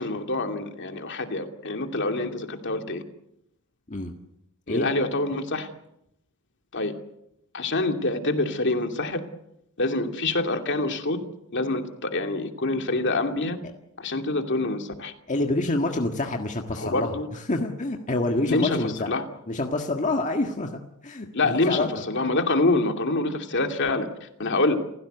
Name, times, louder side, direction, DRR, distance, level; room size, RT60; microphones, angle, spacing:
voice 1, 0.0-3.0 4.7-5.7 6.7-6.9 7.5-9.2 9.8-11.2 11.5-13.6 14.0-15.1 16.8-17.3 18.5-19.2 21.3-24.8, left 2 dB, 55° left, 5 dB, 2.7 m, -26 dB
voice 2, 15.3-19.1 19.5-20.8 21.0-22.0, left 2 dB, 35° left, 3 dB, 1.7 m, -27 dB
29.5 x 16.0 x 8.1 m, 0.81 s
head